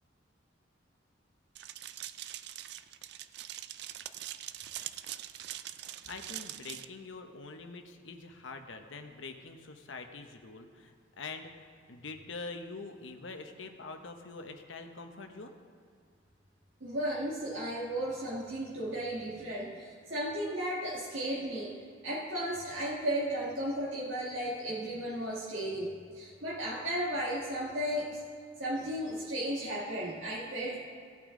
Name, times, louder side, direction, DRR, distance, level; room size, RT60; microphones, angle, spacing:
sound 1, 1.6-6.9, right 12 dB, 55° right, 0.3 m, -43 dB
voice 1, 6.0-15.5, left 3 dB, 80° left, 6 dB, 0.9 m, -45 dB
voice 2, 16.8-28.2 28.6-30.8, right 1 dB, 80° right, -6 dB, 1.7 m, -35 dB
17.0 x 8.4 x 3.8 m, 2.3 s
head